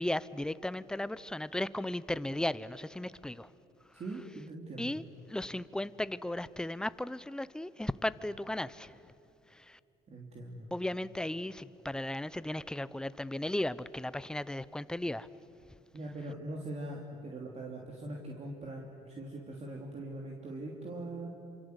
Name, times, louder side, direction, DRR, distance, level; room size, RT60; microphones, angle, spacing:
voice 1, 0.0-3.5 4.8-5.0 5.3-9.1 9.5-9.8 10.7-15.3, left 1 dB, 5° left, 17 dB, 0.6 m, -36 dB
voice 2, 3.9-5.0 10.1-10.7 15.9-21.3, right 2 dB, 40° right, -1 dB, 3.2 m, -42 dB
27.5 x 26.5 x 8.2 m, 2.8 s
cardioid pair, 110°, 17 cm